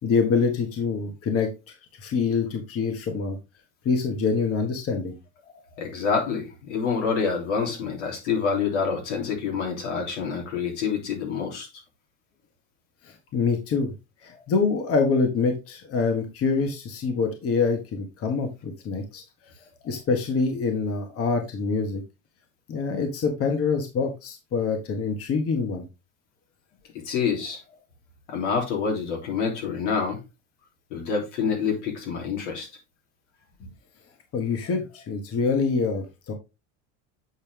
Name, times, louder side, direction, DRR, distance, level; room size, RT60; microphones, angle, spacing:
voice 1, 0.0-3.4 3.8-5.2 13.0-13.9 14.2-19.2 19.8-22.0 22.7-25.8 33.6-33.7 34.3-36.3, left 5 dB, 40° left, 1.6 m, -25 dB
voice 2, 5.8-11.7 26.9-27.6 28.3-30.2 30.9-32.7, left 6 dB, 90° left, 3.4 m, -27 dB
8.2 x 4.4 x 3.5 m
supercardioid pair, 115°, 35 cm